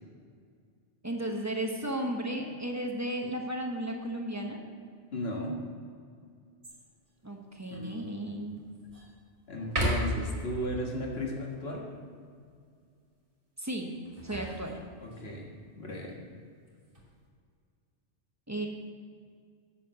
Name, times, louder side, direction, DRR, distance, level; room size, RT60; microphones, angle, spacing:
voice 1, 1.0-4.6 7.2-8.5 13.6-14.0 14.2-14.8 18.5-18.7, right 1 dB, 15° right, 1 dB, 0.9 m, -34 dB
voice 2, 5.1-5.6 7.7-8.2 9.5-11.9 15.0-15.5 15.8-16.1, left 1 dB, 60° left, -1 dB, 1.8 m, -35 dB
sound 1, 6.6-7.1 7.7-7.8 8.3-9.1 9.6-10.4 13.9-15.2 16.6-17.1, right 1 dB, 50° right, 2.3 m, -34 dB
8.2 x 6.5 x 6.6 m, 2.2 s
omnidirectional pair, 1.2 m